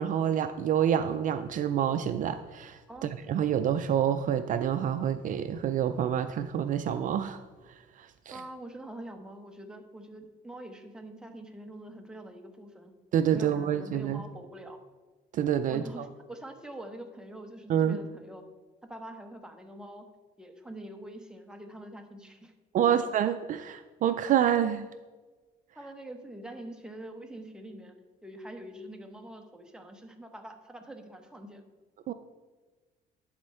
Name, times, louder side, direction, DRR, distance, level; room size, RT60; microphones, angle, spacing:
voice 1, 0.0-7.4 8.0-8.4 13.1-14.2 15.3-15.8 17.7-18.0 22.7-24.9 32.1-32.2, right 9 dB, 50° right, 10 dB, 0.4 m, -27 dB
voice 2, 8.3-12.9 13.3-14.8 15.7-18.4 18.9-20.1 20.4-22.5 22.9-23.0 25.8-31.6, right 1 dB, 5° right, 4 dB, 0.9 m, -45 dB
11.0 x 4.4 x 4.3 m, 1.3 s
cardioid pair, 110°, 17 cm